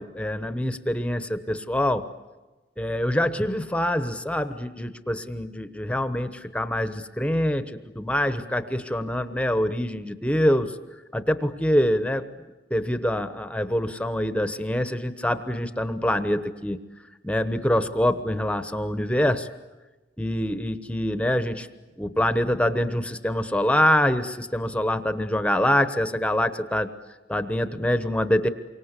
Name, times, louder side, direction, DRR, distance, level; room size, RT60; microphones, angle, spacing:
voice 1, 0.0-2.1 2.8-10.8 11.1-12.3 12.7-16.8 17.2-19.5 20.2-21.7 22.0-26.9 27.3-28.5, left 1 dB, 5° left, 11 dB, 1.1 m, -25 dB
29.0 x 25.0 x 8.2 m, 1.2 s
head